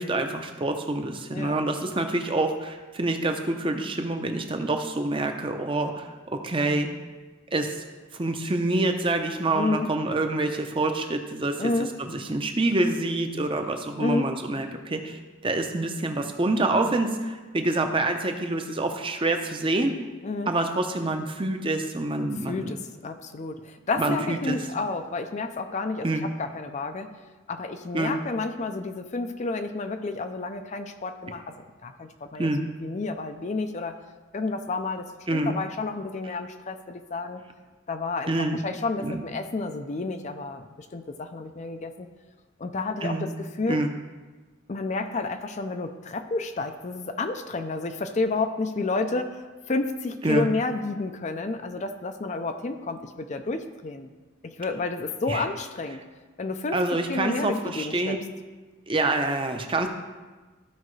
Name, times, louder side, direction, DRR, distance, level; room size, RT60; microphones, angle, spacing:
voice 1, 0.0-6.9 7.5-7.7 8.1-11.7 12.0-20.0 20.5-22.7 24.0-24.6 26.0-26.2 27.9-28.2 32.4-32.6 35.3-35.5 38.3-38.6 39.0-39.2 43.0-43.3 43.7-43.9 50.2-50.5 55.3-55.4 56.7-58.2 58.9-59.9, right 2 dB, 25° right, 5 dB, 0.7 m, -26 dB
voice 2, 1.3-1.6 1.9-2.0 9.5-9.9 11.6-11.9 14.0-14.3 16.8-17.0 20.2-20.5 22.2-27.1 27.5-31.5 31.8-34.0 34.3-37.4 37.9-41.9 42.6-43.8 44.7-54.1 54.4-56.0 56.4-58.2, left 3 dB, 35° left, 8 dB, 0.4 m, -30 dB
14.5 x 5.0 x 3.2 m, 1.3 s
head